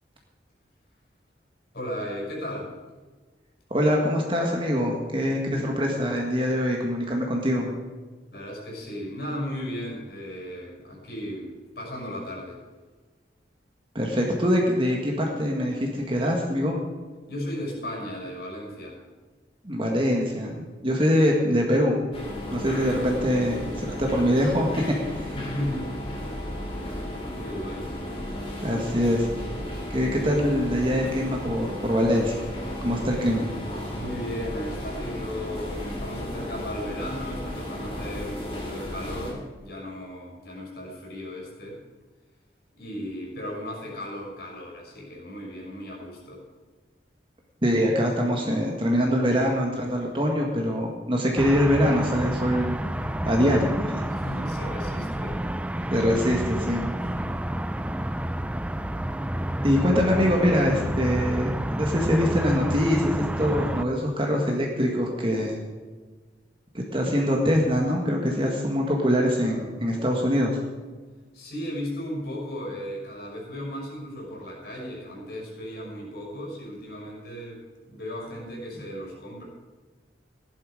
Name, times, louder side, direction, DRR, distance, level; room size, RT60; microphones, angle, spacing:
voice 1, 1.7-2.7 8.3-12.6 17.3-19.0 22.5-23.1 25.3-26.3 27.3-27.9 33.9-41.8 42.8-46.4 54.1-55.4 57.2-57.5 71.3-79.5, equal, 60° left, -1 dB, 5.7 m, -36 dB
voice 2, 3.7-7.7 13.9-16.8 19.6-22.0 22.5-25.0 28.6-29.3 29.9-32.4 32.8-33.5 47.6-52.8 53.2-54.0 55.9-56.8 59.6-65.6 66.7-70.6, equal, 30° right, 0 dB, 1.7 m, -24 dB
sound 1, 22.1-39.3, left 1 dB, 30° left, 3.4 m, -34 dB
sound 2, 51.4-63.8, right 1 dB, 5° right, 0.4 m, -29 dB
16.0 x 11.0 x 5.1 m, 1.3 s
head